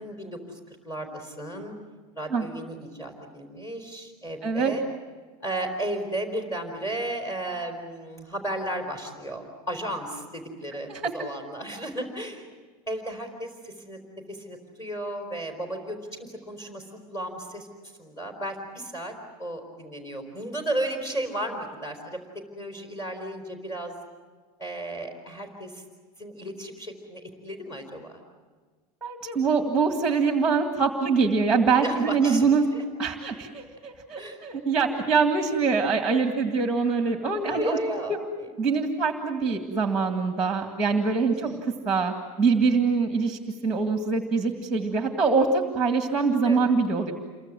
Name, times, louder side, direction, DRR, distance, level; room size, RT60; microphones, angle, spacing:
voice 1, 0.0-1.7 2.2-4.8 5.4-12.5 12.9-14.0 14.3-17.7 18.0-19.1 19.4-22.2 22.6-23.9 24.6-25.8 26.2-28.2 31.8-32.8 34.2-34.5 37.4-38.5 41.3-41.6 46.4-46.7, right 1 dB, 15° left, 6 dB, 4.3 m, -34 dB
voice 2, 4.4-4.7 10.9-11.1 29.0-32.7 33.0-38.2 38.6-41.5 41.9-47.1, right 4 dB, 5° right, 4 dB, 1.9 m, -24 dB
28.5 x 23.5 x 7.7 m, 1.4 s
supercardioid pair, 170°, 19 cm